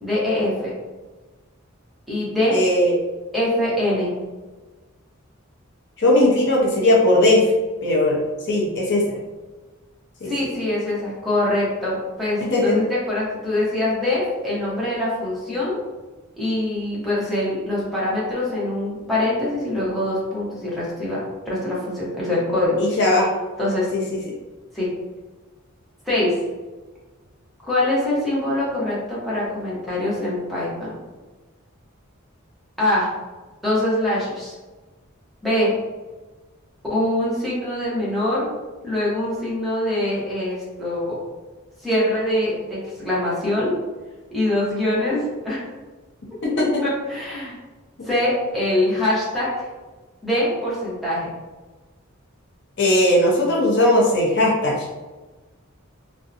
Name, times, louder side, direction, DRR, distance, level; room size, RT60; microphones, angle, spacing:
voice 1, 0.0-0.7 2.1-2.6 3.3-4.2 10.3-15.8 16.3-21.2 21.5-22.8 23.6-23.9 24.7-24.9 26.0-26.3 27.6-31.0 32.8-33.1 33.6-34.5 35.4-35.7 36.9-38.5 38.8-41.2 41.8-43.8 44.3-45.6 46.8-47.6 48.0-49.7 50.2-51.3, left 1 dB, ahead, -8 dB, 0.7 m, -23 dB
voice 2, 2.5-2.9 6.0-7.4 7.8-8.2 8.5-9.2 10.2-10.3 12.4-12.8 22.8-23.3 46.4-46.8 52.8-54.9, left 1 dB, 55° left, -2 dB, 0.6 m, -18 dB
2.6 x 2.1 x 2.4 m, 1.2 s
head